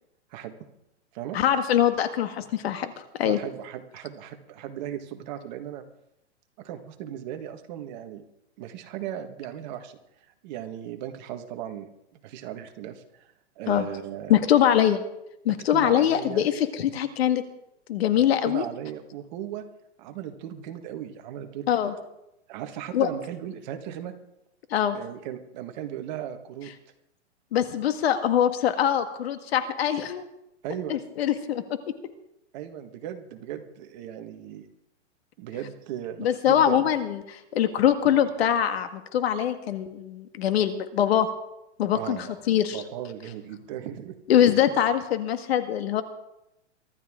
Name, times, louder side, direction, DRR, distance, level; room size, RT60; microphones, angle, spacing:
voice 1, 1.3-2.9 3.2-3.4 13.7-13.9 14.3-15.0 15.5-17.4 17.9-18.7 21.7-21.9 22.9-23.1 24.7-25.0 27.5-30.3 30.9-31.6 36.2-41.3 41.8-42.2 42.5-42.8 44.3-46.0, left 10 dB, 60° left, 8 dB, 1.8 m, -23 dB
voice 2, 3.2-5.8 6.6-8.2 8.6-10.0 10.4-11.9 12.2-14.4 15.7-16.5 18.1-19.6 20.0-21.7 22.5-24.1 24.9-26.7 30.6-31.0 32.5-34.7 35.4-36.8 41.9-42.3 42.7-44.2, right 11 dB, 40° right, 6 dB, 1.7 m, -37 dB
24.0 x 13.0 x 3.8 m, 0.85 s
hypercardioid pair, 150°, 35 cm